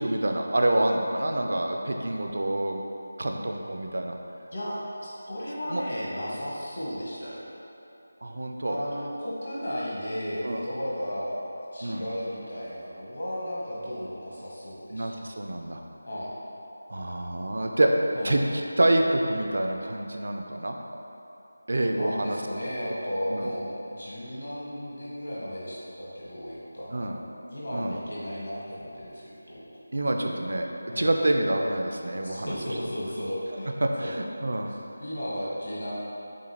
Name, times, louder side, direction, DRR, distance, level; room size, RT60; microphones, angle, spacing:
voice 1, 0.0-2.8 3.2-4.2 5.7-5.8 8.2-8.8 10.4-10.6 11.8-12.0 14.9-15.8 16.9-17.9 18.2-20.8 21.7-22.4 23.3-23.5 26.9-27.2 27.7-28.0 29.9-30.7 31.0-32.5 33.8-34.7, right 1 dB, 65° right, 3 dB, 0.4 m, -27 dB
voice 2, 5.3-7.5 8.6-11.4 11.7-15.1 16.0-16.3 18.1-18.4 22.0-27.2 27.5-29.7 30.9-31.1 32.3-33.7 34.0-34.1 34.7-35.9, equal, 65° left, -7 dB, 1.4 m, -34 dB
6.9 x 2.4 x 3.0 m, 2.9 s
figure-of-eight pair, 165°, 0 cm